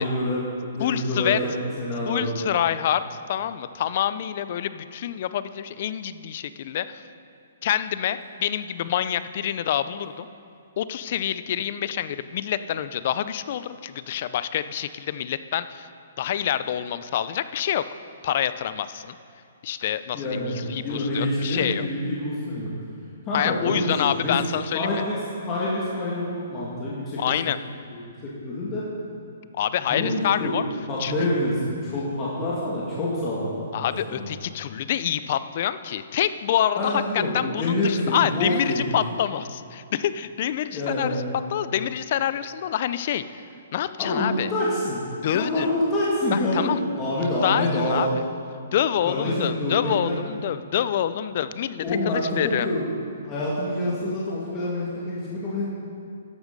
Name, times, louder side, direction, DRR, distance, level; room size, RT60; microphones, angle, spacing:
voice 1, 0.0-2.3 20.1-22.7 23.2-24.3 24.7-25.2 25.5-27.3 27.9-28.8 29.8-30.6 30.9-33.5 33.8-34.3 36.8-39.0 40.7-41.2 44.0-45.0 45.3-48.0 49.1-50.2 51.8-52.9 53.2-55.6, left 1 dB, 25° left, -7 dB, 2.1 m, -27 dB
voice 2, 0.8-1.4 2.1-7.0 7.6-10.3 10.8-15.9 16.2-17.8 18.2-19.2 19.6-21.8 23.3-25.0 27.2-27.6 29.5-30.6 31.0-31.1 33.7-41.2 41.5-43.4 43.7-44.5 45.2-45.7 46.3-46.8 47.1-48.2 48.7-52.7, left 10 dB, 50° left, 13 dB, 0.5 m, -27 dB
12.5 x 8.1 x 5.4 m, 2.5 s
hypercardioid pair, 150°, 0 cm